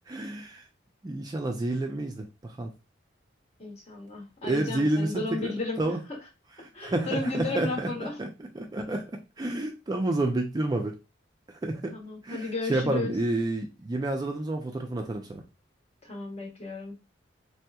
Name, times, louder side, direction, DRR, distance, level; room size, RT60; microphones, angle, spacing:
voice 1, 0.1-0.6 1.0-2.7 4.4-5.5 5.8-6.0 6.8-8.3 8.5-10.9 11.5-12.0 12.2-15.4, right 2 dB, 20° right, 0.3 m, -29 dB
voice 2, 3.6-6.0 6.7-8.2 11.9-13.1 16.0-17.1, left 2 dB, 35° left, 0.9 m, -34 dB
3.3 x 2.8 x 2.3 m
head